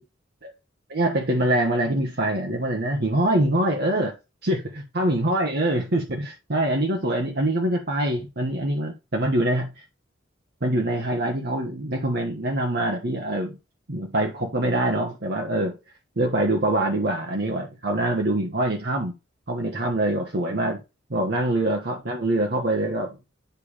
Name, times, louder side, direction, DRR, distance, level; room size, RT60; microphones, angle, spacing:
voice 1, 0.9-4.1 4.4-9.8 10.6-13.6 13.9-15.8 16.2-19.1 19.5-20.8 21.1-23.2, right 1 dB, 55° right, 1.2 m, -24 dB
9.4 x 3.5 x 5.0 m
head